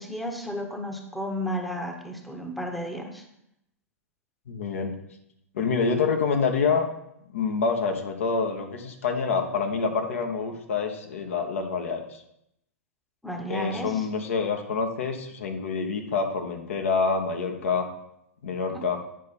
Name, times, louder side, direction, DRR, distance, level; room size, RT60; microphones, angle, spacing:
voice 1, 0.0-3.2 13.2-14.1 18.7-18.8, equal, ahead, 3 dB, 1.0 m, -33 dB
voice 2, 4.5-5.0 5.5-6.9 7.3-12.2 13.5-17.9 18.4-19.0, left 5 dB, 65° left, 4 dB, 1.2 m, -27 dB
9.0 x 5.3 x 4.3 m, 0.79 s
figure-of-eight pair, 100°, 8 cm